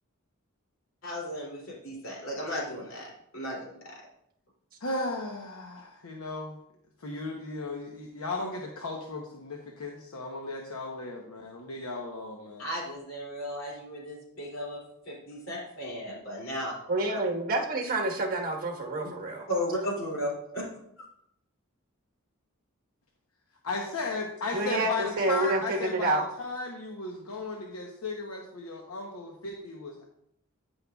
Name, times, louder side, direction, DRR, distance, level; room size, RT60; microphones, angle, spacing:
voice 1, 1.0-4.0 12.6-16.7 19.0-19.2 19.5-20.6 21.0-21.1, equal, 65° left, -3 dB, 2.9 m, -35 dB
voice 2, 4.8-6.6 7.0-12.6 23.6-30.0, left 3 dB, 90° left, 1 dB, 0.9 m, -35 dB
voice 3, 16.9-19.5 24.5-26.2, right 2 dB, 45° right, 0 dB, 1.3 m, -28 dB
12.0 x 5.5 x 2.3 m, 0.75 s
head